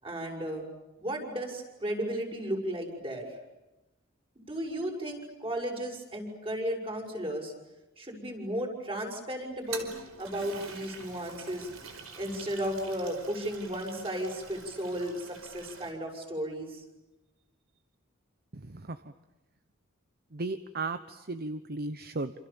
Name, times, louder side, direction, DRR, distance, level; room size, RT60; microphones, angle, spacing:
voice 1, 0.0-0.7 1.0-3.3 4.4-7.5 8.0-9.9 10.2-11.7 12.1-16.8, equal, 25° right, 2 dB, 7.1 m, -34 dB
Toilet flush, 9.5-15.9, right 5 dB, 75° right, 4.8 m, -46 dB
voice 2, 18.5-19.1 20.3-22.3, right 3 dB, 50° right, 11 dB, 1.0 m, -36 dB
28.5 x 28.0 x 7.3 m, 1.0 s
head